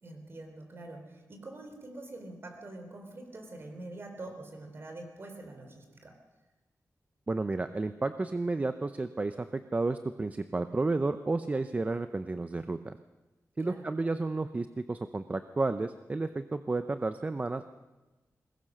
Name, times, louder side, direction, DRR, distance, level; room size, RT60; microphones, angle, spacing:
voice 1, 0.0-6.1 13.6-13.8, right 2 dB, 45° right, 4 dB, 3.6 m, -45 dB
voice 2, 7.3-13.0 13.6-17.7, right 3 dB, 25° right, 10 dB, 0.6 m, -32 dB
22.0 x 20.0 x 6.5 m, 1.1 s
wide cardioid pair, 155°, 6 cm